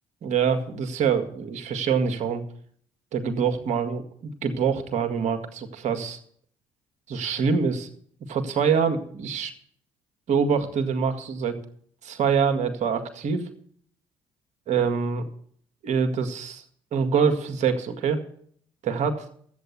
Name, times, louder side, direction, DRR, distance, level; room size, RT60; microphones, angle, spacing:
voice 1, 0.2-2.4 3.1-6.2 7.1-7.9 8.3-9.5 10.3-11.6 12.0-13.4 14.7-15.3 15.8-16.6 16.9-18.2 18.8-19.3, right 6 dB, 60° right, 7 dB, 1.9 m, -25 dB
13.5 x 8.2 x 8.2 m, 0.62 s
hypercardioid pair, 60°, 13 cm